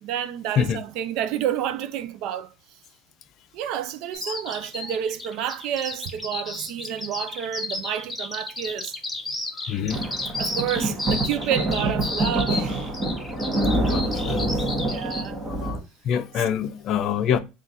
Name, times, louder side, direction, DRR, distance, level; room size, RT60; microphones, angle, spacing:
voice 1, 0.0-2.5 3.5-8.9 10.4-12.9 14.7-15.4, right 10 dB, 60° right, 0.5 m, -29 dB
Bird vocalization bird call bird song, 4.1-15.3, left 2 dB, 10° left, 0.9 m, -32 dB
voice 2, 9.7-10.0 13.5-14.6 15.6-15.8 16.0-17.4, left 8 dB, 45° left, 0.5 m, -26 dB
sound 1, 9.9-15.8, right 1 dB, 20° right, 1.0 m, -26 dB
3.8 x 2.4 x 4.0 m
cardioid pair, 140°, 0 cm